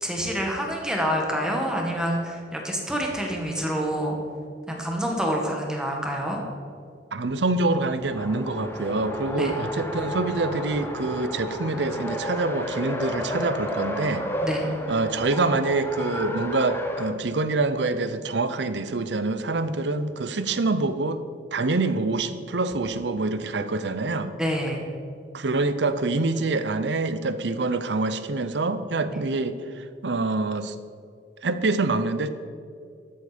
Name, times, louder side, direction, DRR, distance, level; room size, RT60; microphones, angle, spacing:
voice 1, 0.0-4.2 4.7-6.4 9.4-9.5 14.4-14.7 24.4-24.8 29.1-29.2, equal, 5° right, 0 dB, 1.7 m, -27 dB
voice 2, 7.1-14.3 14.9-21.2 21.5-24.3 25.3-30.8 31.4-32.3, right 3 dB, 70° right, 11 dB, 0.7 m, -26 dB
Race car auto racing, 7.9-17.1, equal, 15° left, 0.9 m, -32 dB
12.5 x 8.1 x 5.2 m, 2.2 s
head